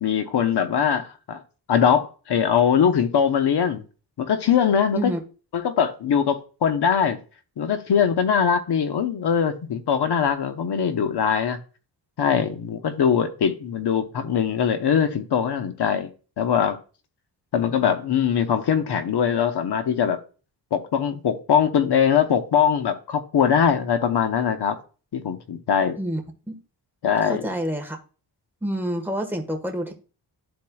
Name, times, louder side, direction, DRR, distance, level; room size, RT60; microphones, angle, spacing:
voice 1, 0.0-1.4 1.7-3.8 4.2-5.1 5.5-7.2 7.6-11.6 12.2-16.1 16.4-16.8 17.5-20.2 20.7-24.8 25.1-26.0 27.0-27.4, left 7 dB, 65° left, 1.0 m, -21 dB
voice 2, 27.2-28.0 28.6-29.9, equal, 5° right, 1.4 m, -27 dB
12.5 x 4.3 x 2.3 m
cardioid pair, 85°, 43 cm